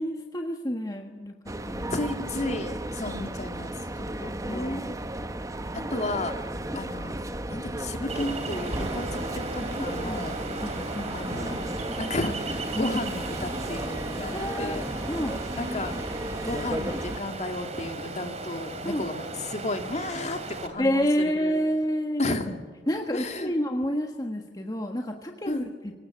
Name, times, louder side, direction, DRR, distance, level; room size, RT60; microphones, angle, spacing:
voice 1, 0.0-2.1 4.4-4.9 9.6-10.2 10.6-11.3 12.7-13.0 14.3-14.8 15.1-15.3 18.8-19.0 20.8-22.2 22.9-26.0, equal, 20° left, 3 dB, 1.5 m, -29 dB
sound 1, 1.5-17.2, right 1 dB, 20° right, 0.9 m, -34 dB
voice 2, 1.9-3.7 4.2-4.8 5.7-6.3 6.7-7.2 7.5-9.4 9.8-10.4 10.7-10.8 11.1-11.7 12.0-14.8 15.6-21.5 22.2-22.6 23.1-23.5 25.5-25.7, left 2 dB, 40° left, 6 dB, 2.2 m, -33 dB
Ocean, 8.1-20.7, right 3 dB, 35° right, 2.9 m, -36 dB
25.5 x 19.0 x 8.9 m, 1.5 s
head